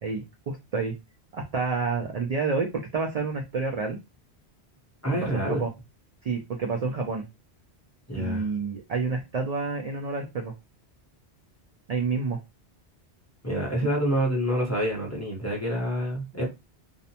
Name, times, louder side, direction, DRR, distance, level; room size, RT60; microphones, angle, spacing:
voice 1, 0.0-0.9 1.3-4.0 5.1-5.7 6.2-7.2 8.2-10.5 11.9-12.4, right 4 dB, 55° right, 2 dB, 0.4 m, -29 dB
voice 2, 5.0-5.6 8.1-8.4 13.4-16.5, equal, 15° left, -3 dB, 0.7 m, -27 dB
2.5 x 2.1 x 2.7 m, 0.23 s
omnidirectional pair, 1.1 m